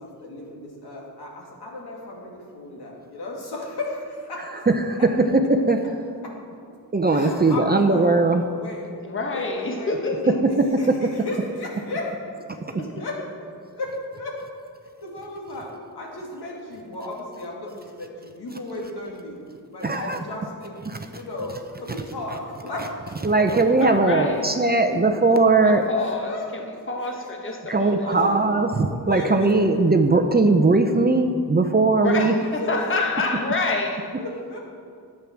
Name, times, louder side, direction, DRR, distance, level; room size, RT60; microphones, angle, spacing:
voice 1, 0.0-5.0 6.2-6.3 7.1-8.1 8.6-8.9 9.3-10.2 10.8-12.1 12.5-13.2 13.7-14.4 15.0-15.7 15.9-19.4 19.7-20.7 21.1-22.9 23.4-23.5 26.0-26.5 26.7-27.5 27.8-28.4 28.9-29.5 32.1-32.2 32.6-32.9 34.2-34.6, left 2 dB, 70° left, -2 dB, 2.5 m, -35 dB
voice 2, 4.4-5.9 6.9-8.4 10.4-11.1 19.8-20.2 21.1-21.2 21.9-22.0 22.3-22.4 22.8-25.8 27.7-32.3, right 3 dB, 25° right, 5 dB, 0.7 m, -20 dB
voice 3, 9.0-10.4 12.8-12.9 23.6-24.4 25.6-26.6 26.9-28.1 31.9-34.2, left 3 dB, 30° left, 2 dB, 1.3 m, -27 dB
10.5 x 7.7 x 6.0 m, 2.3 s
cardioid pair, 85°, 41 cm